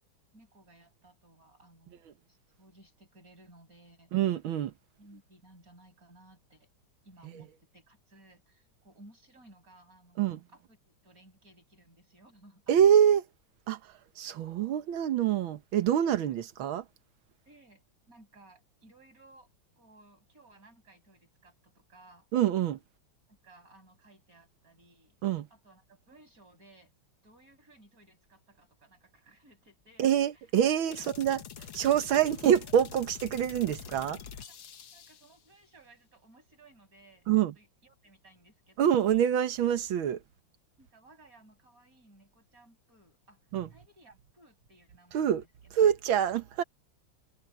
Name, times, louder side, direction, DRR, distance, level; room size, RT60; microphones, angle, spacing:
voice 1, 0.3-2.0 2.3-4.1 5.0-6.7 7.0-13.1 17.4-22.3 23.3-25.2 25.5-26.9 27.2-30.5 31.0-31.1 34.9-37.3 37.5-39.1 40.8-43.4 43.7-45.7, right 2 dB, 45° right, 8.1 m, -59 dB
voice 2, 4.1-4.7 10.2-10.4 12.7-13.2 13.7-13.8 14.2-16.8 22.3-22.8 25.2-25.5 30.0-31.4 31.7-34.2 37.3-37.5 38.8-40.2 43.5-43.7 45.1-45.4 45.8-46.6, right 9 dB, 85° right, 1.9 m, -25 dB
sound 1, 30.9-35.4, left 7 dB, 75° left, 2.1 m, -46 dB
omnidirectional pair, 2.2 m